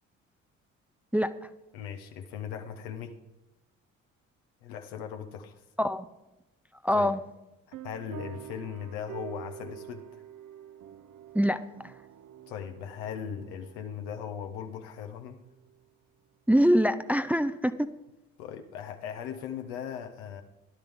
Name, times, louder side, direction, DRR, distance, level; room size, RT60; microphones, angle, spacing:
voice 1, 1.7-3.2 4.6-5.6 6.9-7.1 7.7-10.2 12.5-15.4 18.4-20.4, left 8 dB, 70° left, 7 dB, 1.2 m, -39 dB
voice 2, 6.8-7.2 11.3-11.9 16.5-17.9, equal, 5° right, 11 dB, 0.6 m, -24 dB
sound 1, 7.7-15.8, right 9 dB, 55° right, 0.9 m, -47 dB
16.5 x 12.0 x 3.6 m, 0.98 s
figure-of-eight pair, 45°, 39 cm